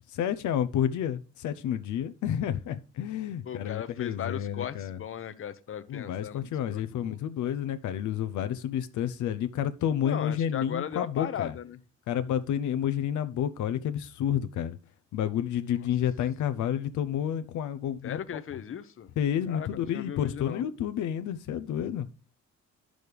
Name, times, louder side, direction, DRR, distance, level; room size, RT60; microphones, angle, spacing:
voice 1, 0.1-5.0 5.9-11.6 12.1-14.8 15.1-18.4 19.2-22.1, left 10 dB, 75° left, 0.7 m, -30 dB
voice 2, 3.4-7.2 10.0-11.8 18.0-19.1 19.5-20.6, left 9 dB, 45° left, 0.8 m, -37 dB
10.5 x 6.3 x 3.4 m
cardioid pair, 90°, 30 cm